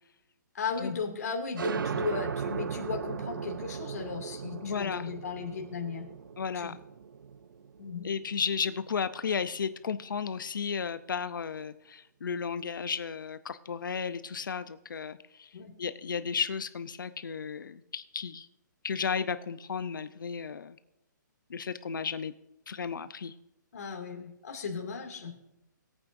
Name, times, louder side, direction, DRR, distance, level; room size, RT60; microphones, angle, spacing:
voice 1, 0.5-6.1 6.5-6.7 7.8-8.1 15.5-15.7 23.7-25.3, left 5 dB, 50° left, 1 dB, 2.5 m, -36 dB
sound 1, 1.6-8.8, right 6 dB, 85° right, 0.6 m, -37 dB
voice 2, 4.6-5.1 6.4-6.8 8.0-15.5 15.8-18.5 18.8-20.8 21.5-22.3 22.7-23.3, left 6 dB, 80° left, 12 dB, 0.7 m, -34 dB
21.5 x 8.8 x 2.6 m, 0.86 s
hypercardioid pair, 175°, 11 cm